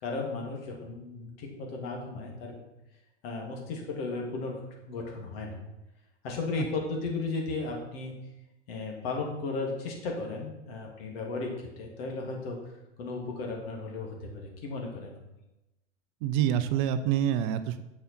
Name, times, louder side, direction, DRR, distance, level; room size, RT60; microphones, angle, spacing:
voice 1, 0.0-2.6 3.2-5.6 6.2-8.1 8.7-12.7 13.0-15.2, left 3 dB, 60° left, 0 dB, 2.7 m, -35 dB
voice 2, 16.2-17.8, right 10 dB, 45° right, 11 dB, 0.6 m, -27 dB
7.9 x 6.7 x 4.5 m, 0.95 s
hypercardioid pair, 90°, 34 cm